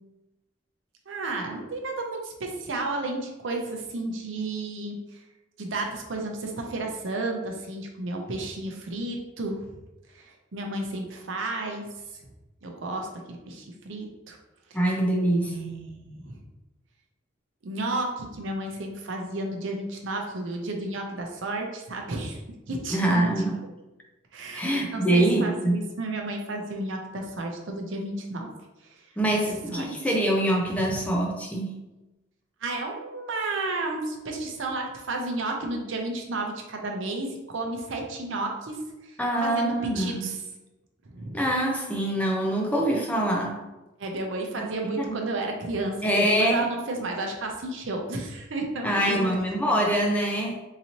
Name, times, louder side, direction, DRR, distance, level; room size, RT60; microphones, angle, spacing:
voice 1, 1.1-5.2 5.6-9.7 10.1-11.9 12.1-12.3 12.6-14.4 15.3-16.4 17.6-22.4 22.7-23.5 24.3-24.6 24.9-28.5 28.8-29.1 29.5-30.1 30.9-31.0 32.6-40.4 41.0-41.4 44.0-49.4, right 2 dB, 65° right, 2 dB, 0.6 m, -32 dB
voice 2, 14.7-15.6 22.9-23.6 24.5-25.8 29.2-31.8 39.2-40.3 41.3-43.6 45.0-45.2 46.0-46.7 48.8-50.6, right 1 dB, 5° left, -1 dB, 0.4 m, -24 dB
4.0 x 2.7 x 2.9 m, 1.0 s
head